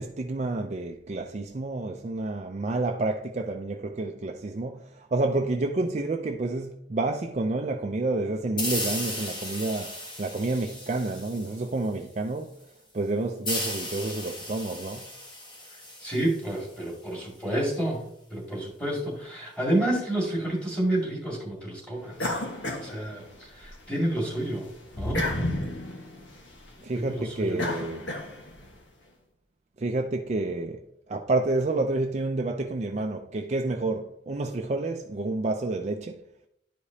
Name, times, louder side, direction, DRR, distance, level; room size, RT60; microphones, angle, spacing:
voice 1, 0.0-9.9 10.2-12.6 12.9-15.1 26.8-28.0 29.8-30.8 31.1-36.2, right 2 dB, 40° right, 0.4 m, -29 dB
sound 1, 8.6-12.0 13.4-16.9, left 1 dB, 25° left, 1.4 m, -35 dB
voice 2, 16.0-18.0 18.3-22.3 22.8-24.7 25.0-25.3 26.9-27.6, right 1 dB, 5° left, 2.2 m, -29 dB
sound 2, 22.2-23.7 24.1-28.7, left 1 dB, 90° left, 1.4 m, -33 dB
11.0 x 4.9 x 2.8 m
head